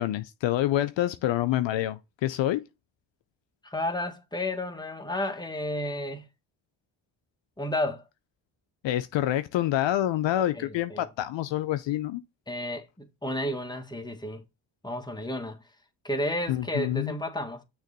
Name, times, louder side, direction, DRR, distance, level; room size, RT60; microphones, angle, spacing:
voice 1, 0.0-2.6 8.8-12.2 16.5-17.2, left 13 dB, 65° left, 0.6 m, -27 dB
voice 2, 3.6-6.3 7.6-8.0 10.5-11.1 12.5-14.4 14.8-15.6 16.0-17.6, left 1 dB, 10° left, 1.4 m, -32 dB
6.4 x 3.2 x 5.2 m
supercardioid pair, 60°, 48 cm